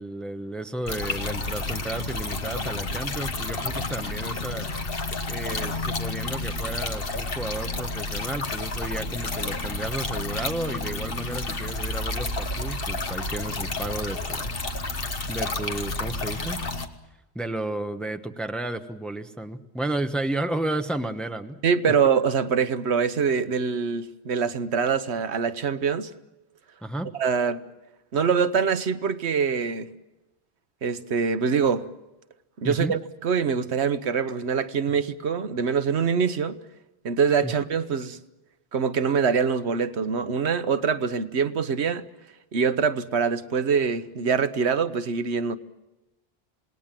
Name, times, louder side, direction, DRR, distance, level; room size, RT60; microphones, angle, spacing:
voice 1, 0.0-4.7 5.3-14.5 15.3-16.6 17.3-21.6 26.8-27.1 32.6-32.9 37.4-37.5, right 1 dB, ahead, 1.0 m, -32 dB
sound 1, 0.9-16.9, left 2 dB, 60° left, 1.6 m, -30 dB
voice 2, 21.6-26.1 27.2-27.6 28.1-29.9 30.8-31.8 32.6-36.6 37.0-38.2 38.7-42.0 42.5-45.6, right 6 dB, 80° right, 1.3 m, -24 dB
27.0 x 19.5 x 7.5 m
omnidirectional pair, 1.1 m